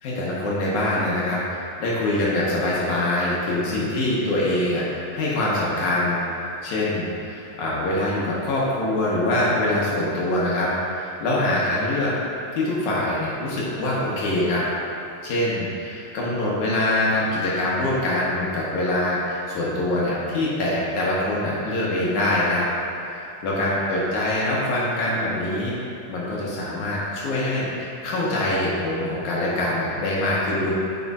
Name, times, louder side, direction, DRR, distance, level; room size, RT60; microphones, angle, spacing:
voice 1, 0.0-6.2 6.6-12.1 12.5-14.6 15.2-22.7 23.1-25.8 26.1-30.7, left 1 dB, 80° left, -6 dB, 2.5 m, -24 dB
9.3 x 6.3 x 2.4 m, 2.9 s
omnidirectional pair, 3.4 m